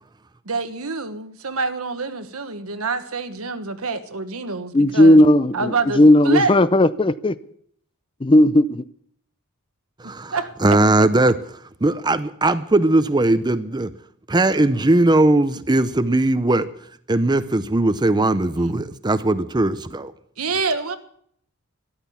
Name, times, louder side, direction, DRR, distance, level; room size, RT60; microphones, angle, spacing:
voice 1, 0.4-5.2 5.5-6.5 10.0-10.8 18.6-18.9 20.4-21.0, right 4 dB, 80° right, 1.4 m, -26 dB
voice 2, 4.7-7.3 8.2-8.8, left 1 dB, 25° left, 0.6 m, -15 dB
voice 3, 10.0-11.4 11.8-13.9 14.3-16.7 17.1-20.1, right 2 dB, 20° right, 0.6 m, -19 dB
13.5 x 12.0 x 7.0 m
head